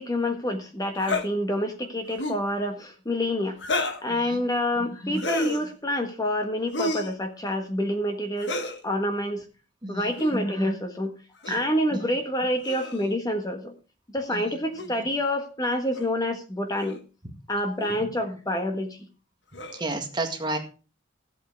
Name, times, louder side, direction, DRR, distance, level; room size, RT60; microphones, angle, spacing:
voice 1, 0.0-8.6 8.8-9.4 9.9-11.1 11.5-13.7 14.1-17.0 17.5-19.0, left 1 dB, 20° left, 5 dB, 1.5 m, -27 dB
sound 1, 1.0-1.3 2.1-2.5 3.6-4.1 5.1-5.6 6.7-7.1 8.4-8.8 10.1-10.4 11.4-11.7 12.6-13.1 14.8-14.9 15.9-16.1 16.8-17.0 17.8-18.0 19.5-19.9, left 2 dB, 65° left, 1.6 m, -31 dB
voice 2, 4.1-4.4 9.8-10.1 11.5-11.6 14.3-14.5 19.7-20.6, right 2 dB, 25° right, 4 dB, 1.8 m, -31 dB
14.5 x 8.3 x 4.7 m, 0.35 s
head